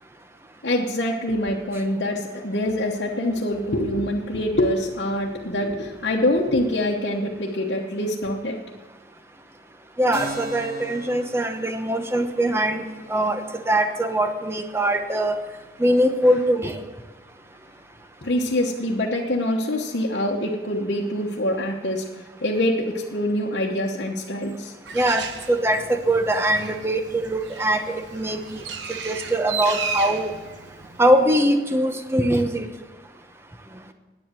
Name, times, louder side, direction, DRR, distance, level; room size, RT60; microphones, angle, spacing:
voice 1, 0.6-8.6 18.2-22.1 22.4-24.7, left 1 dB, 70° left, -3 dB, 1.1 m, -25 dB
voice 2, 10.0-15.4 15.8-16.8 24.9-28.6 28.9-30.3 31.0-32.6, right 1 dB, 15° right, 7 dB, 0.8 m, -22 dB
Keyboard (musical), 10.1-17.4, right 1 dB, 60° right, 2.1 m, -42 dB
Bird, 24.8-31.3, right 6 dB, 90° right, 1.0 m, -34 dB
11.0 x 8.7 x 7.5 m, 1.2 s
head